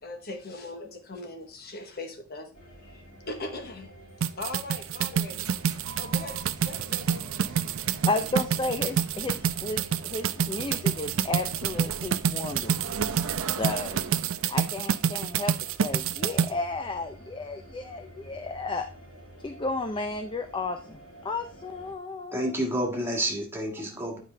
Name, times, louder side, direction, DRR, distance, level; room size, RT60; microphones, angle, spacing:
voice 1, 0.0-3.9 4.4-5.5 6.0-7.2 7.7-7.9, left 2 dB, 45° left, 5 dB, 1.0 m, -40 dB
sound 1, 2.5-21.9, equal, 70° left, 3.1 m, -49 dB
sound 2, 4.2-16.5, right 8 dB, 65° right, 0.4 m, -27 dB
sound 3, 5.2-14.5, right 4 dB, 85° right, 0.8 m, -41 dB
voice 2, 8.1-12.7 13.4-14.0 14.5-15.5 15.8-18.9 19.4-21.0 21.2-22.6, left 2 dB, 20° left, 7 dB, 0.4 m, -33 dB
voice 3, 22.3-24.2, right 1 dB, 10° right, 0 dB, 1.7 m, -29 dB
9.4 x 4.9 x 3.3 m, 0.38 s
head